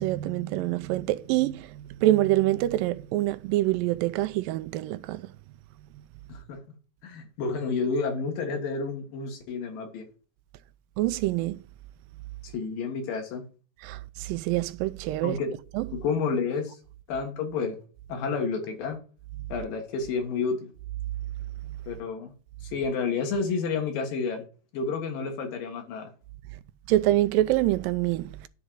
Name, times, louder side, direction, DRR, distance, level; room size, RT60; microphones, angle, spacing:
voice 1, 0.0-5.2 11.0-11.6 13.8-15.4 15.8-15.9 26.9-28.3, right 15 dB, 90° right, 2.3 m, -25 dB
voice 2, 7.0-10.0 12.4-13.4 15.2-15.6 15.9-16.8 17.1-17.8 18.1-19.0 19.5-20.7 21.9-22.3 22.7-24.4 24.7-26.1, left 4 dB, 80° left, 3.2 m, -30 dB
10.5 x 3.8 x 7.5 m
omnidirectional pair, 3.9 m